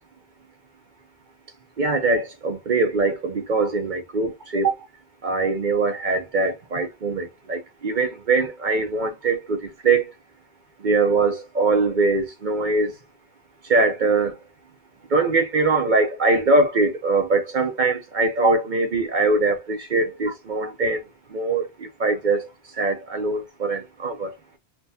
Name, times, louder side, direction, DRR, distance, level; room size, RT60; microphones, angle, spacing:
voice 1, 1.8-4.7 5.2-10.1 10.8-12.9 13.6-14.4 15.1-21.0 21.3-22.5 22.8-24.3, right 3 dB, 50° right, 0.8 m, -22 dB
5.7 x 2.4 x 2.7 m
omnidirectional pair, 1.1 m